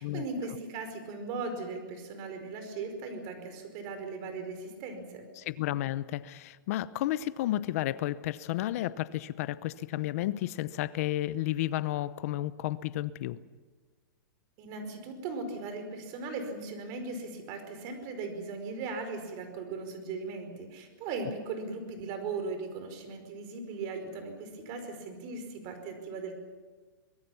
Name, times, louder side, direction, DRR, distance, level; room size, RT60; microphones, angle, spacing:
voice 1, 0.0-5.2 14.6-26.4, right 4 dB, 35° right, 7 dB, 4.9 m, -38 dB
voice 2, 5.4-13.4, left 14 dB, 45° left, 16 dB, 0.9 m, -32 dB
24.5 x 21.0 x 7.1 m, 1.4 s
hypercardioid pair, 155°, 11 cm